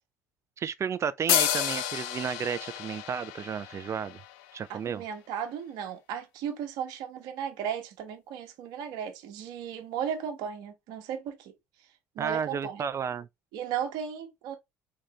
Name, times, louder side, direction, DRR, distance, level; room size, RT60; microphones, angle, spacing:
voice 1, 0.6-4.2 4.5-5.0 12.2-13.3, right 7 dB, 40° right, 0.5 m, -32 dB
sound 1, 1.3-4.8, left 12 dB, 75° left, 0.5 m, -31 dB
voice 2, 4.7-11.5 12.1-12.8 13.5-14.6, right 8 dB, 65° right, 1.1 m, -35 dB
4.0 x 3.6 x 3.2 m
hypercardioid pair, 65°, 8 cm